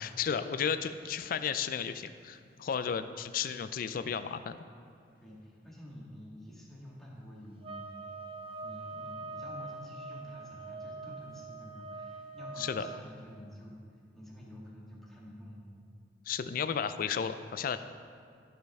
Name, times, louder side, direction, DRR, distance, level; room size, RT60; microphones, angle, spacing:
voice 1, 0.0-4.6 12.6-12.9 16.3-17.8, left 7 dB, 50° left, 11 dB, 0.3 m, -33 dB
voice 2, 5.2-8.2 8.6-15.8, equal, ahead, -6 dB, 1.7 m, -49 dB
sound 1, 7.6-13.1, right 3 dB, 30° right, 0.4 m, -43 dB
14.5 x 5.3 x 3.5 m, 2.3 s
head